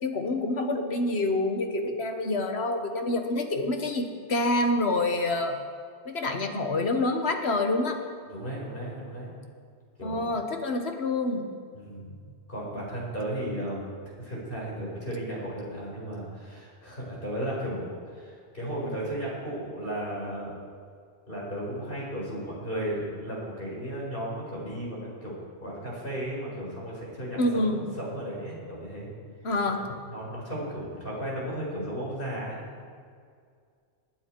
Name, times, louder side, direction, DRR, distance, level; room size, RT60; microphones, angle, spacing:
voice 1, 0.0-5.6 6.1-8.0 10.0-11.5 27.4-27.8 29.4-29.8, left 2 dB, 65° left, 4 dB, 1.6 m, -27 dB
voice 2, 8.3-9.3 10.0-10.2 11.7-12.2 12.5-13.8 14.2-20.5 21.3-29.1 29.7-29.8 30.1-32.9, right 1 dB, 50° left, -4 dB, 5.1 m, -35 dB
21.0 x 9.2 x 4.7 m, 2.2 s
omnidirectional pair, 1.2 m